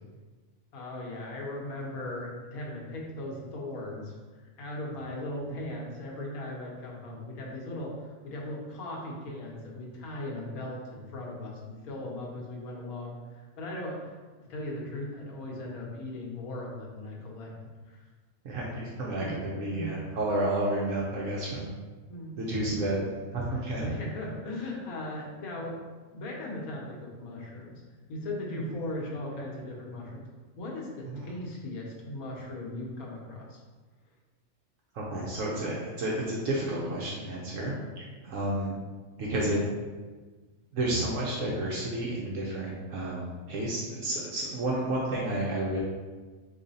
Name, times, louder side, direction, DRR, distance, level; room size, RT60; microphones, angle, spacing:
voice 1, 0.7-4.1 4.4-14.1 14.4-17.5 17.9-18.0 19.2-19.3 19.7-20.0 22.1-22.4 23.8-25.8 26.1-27.8 28.1-30.3 30.6-33.6, left 1 dB, 85° left, -2 dB, 1.4 m, -38 dB
voice 2, 18.4-21.7 22.4-23.9 31.0-31.3 34.9-38.7 39.2-39.6 40.7-45.8, right 1 dB, 65° right, -4 dB, 1.1 m, -31 dB
4.1 x 3.2 x 4.0 m, 1.4 s
omnidirectional pair, 1.5 m